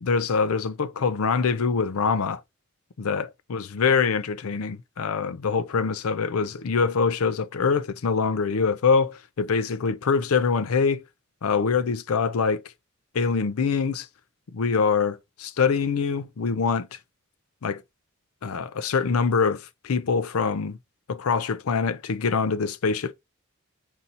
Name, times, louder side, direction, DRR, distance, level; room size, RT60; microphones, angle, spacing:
voice 1, 0.0-2.4 3.0-11.0 11.4-12.6 13.1-14.1 14.5-17.0 17.6-17.8 18.4-20.8 21.1-23.1, left 5 dB, 80° left, 0.5 m, -24 dB
4.0 x 2.7 x 4.1 m
head